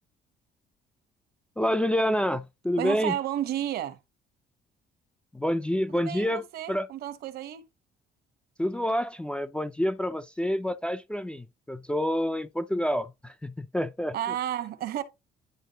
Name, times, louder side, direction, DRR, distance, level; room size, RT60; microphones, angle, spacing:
voice 1, 1.6-3.2 5.3-6.9 8.6-14.2, equal, 5° left, 0.4 m, -28 dB
voice 2, 2.8-4.0 5.9-7.6 14.1-15.0, right 11 dB, 70° right, 1.0 m, -32 dB
10.5 x 3.6 x 2.8 m
cardioid pair, 110°, 17 cm